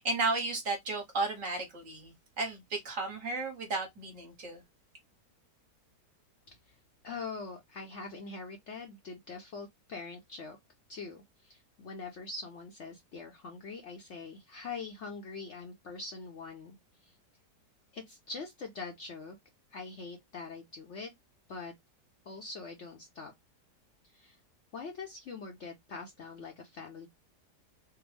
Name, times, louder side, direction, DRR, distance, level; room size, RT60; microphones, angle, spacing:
voice 1, 0.0-4.6, right 3 dB, 55° right, 1.5 m, -34 dB
voice 2, 7.0-10.6 10.9-17.2 17.9-19.4 19.7-21.1 21.5-21.7 22.2-23.3 24.0-24.4 24.7-27.1, left 4 dB, 55° left, 0.8 m, -43 dB
3.5 x 2.1 x 3.2 m
omnidirectional pair, 1.8 m